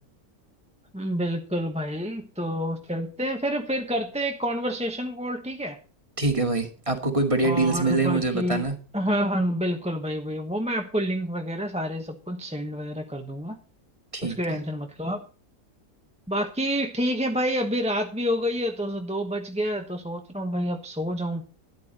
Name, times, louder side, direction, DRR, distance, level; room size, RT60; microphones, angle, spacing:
voice 1, 0.9-5.8 7.4-8.7 8.9-13.6 14.2-15.2 16.3-21.4, equal, 5° right, 4 dB, 1.0 m, -28 dB
voice 2, 6.2-8.7 14.1-14.6, right 3 dB, 20° right, 4 dB, 2.2 m, -24 dB
13.0 x 10.5 x 4.3 m, 0.36 s
omnidirectional pair, 1.6 m